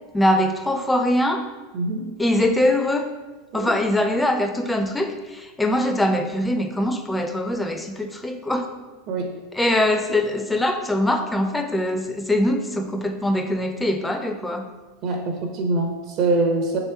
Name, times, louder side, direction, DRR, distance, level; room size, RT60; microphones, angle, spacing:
voice 1, 0.1-1.4 2.2-3.1 3.5-8.7 9.5-14.7, left 1 dB, 10° left, 6 dB, 0.4 m, -22 dB
voice 2, 1.7-2.1 3.5-3.7 9.1-9.4 15.0-16.8, right 3 dB, 55° right, 3 dB, 0.7 m, -24 dB
3.2 x 2.9 x 4.4 m, 1.2 s
hypercardioid pair, 95°, 0 cm